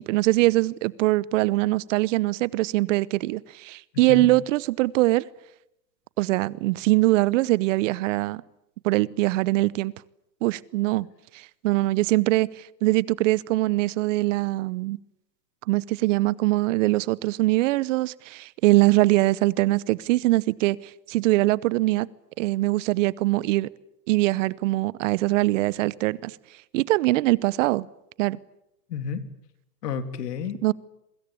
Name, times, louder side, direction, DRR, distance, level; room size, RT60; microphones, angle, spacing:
voice 1, 0.0-5.3 6.2-8.4 8.8-9.9 10.4-11.1 11.3-15.0 15.7-22.1 22.4-23.7 24.1-26.4 26.7-27.9 28.2-28.4 30.6-30.7, right 19 dB, 50° right, 0.9 m, -22 dB
voice 2, 28.9-29.2 29.8-30.7, left 7 dB, 70° left, 3.4 m, -31 dB
26.5 x 24.0 x 8.5 m
hypercardioid pair, 115°, 50 cm